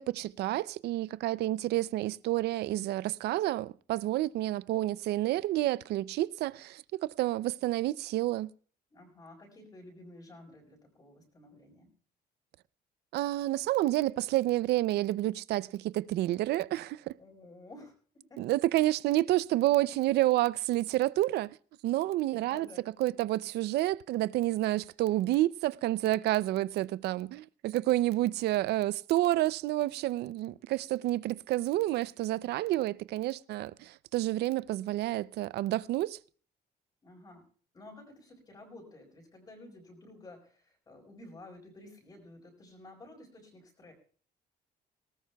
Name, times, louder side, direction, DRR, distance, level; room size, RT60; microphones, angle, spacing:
voice 1, 0.0-8.5 13.1-17.1 18.4-21.6 21.8-22.7 23.0-36.2, right 16 dB, 85° right, 0.5 m, -29 dB
voice 2, 8.9-11.9 17.2-17.9 18.3-18.5 22.3-22.8 37.0-37.4 37.7-43.9, left 2 dB, 25° left, 4.7 m, -52 dB
19.5 x 18.5 x 2.3 m
cardioid pair, 180°, 17 cm